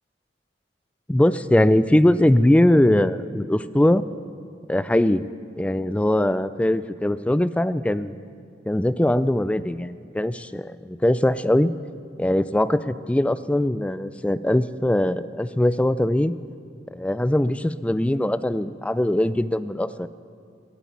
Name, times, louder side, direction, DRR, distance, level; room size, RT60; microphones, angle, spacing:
voice 1, 1.1-4.0 4.7-5.2 5.6-8.1 8.7-11.7 12.2-16.3 16.9-20.1, left 1 dB, 5° left, 14 dB, 0.3 m, -21 dB
13.5 x 8.3 x 9.4 m, 2.3 s
head